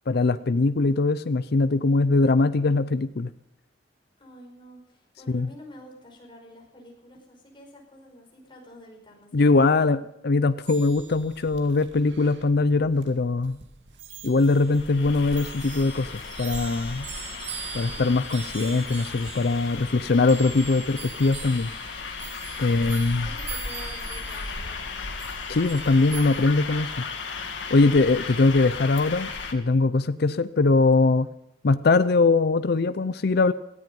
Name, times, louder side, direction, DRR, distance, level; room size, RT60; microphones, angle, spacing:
voice 1, 0.1-3.3 5.3-5.5 9.3-13.6 14.2-16.1 16.4-17.1 17.7-21.7 22.6-23.3 25.5-26.9 27.7-31.3 31.6-33.5, left 3 dB, 60° left, 13 dB, 0.6 m, -21 dB
voice 2, 4.2-9.9 23.2-25.2, equal, 30° left, 1 dB, 5.0 m, -48 dB
sound 1, 10.7-27.0, right 8 dB, 75° right, 2.1 m, -43 dB
sound 2, 14.5-29.5, left 4 dB, 85° left, 2.2 m, -35 dB
18.5 x 13.5 x 5.3 m, 0.82 s
head